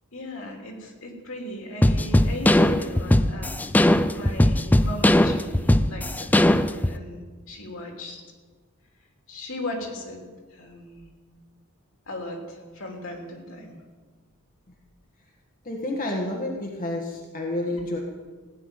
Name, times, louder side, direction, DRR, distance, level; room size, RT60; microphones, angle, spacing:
voice 1, 0.1-3.7 4.1-8.2 9.3-10.2 10.5-11.1 12.1-13.8 17.6-17.7, left 1 dB, 70° left, 1 dB, 3.0 m, -37 dB
sound 1, 1.8-7.0, left 1 dB, 10° left, 0.4 m, -19 dB
voice 2, 15.6-18.0, left 1 dB, 40° left, -1 dB, 1.6 m, -29 dB
16.5 x 6.0 x 9.8 m, 1.4 s
head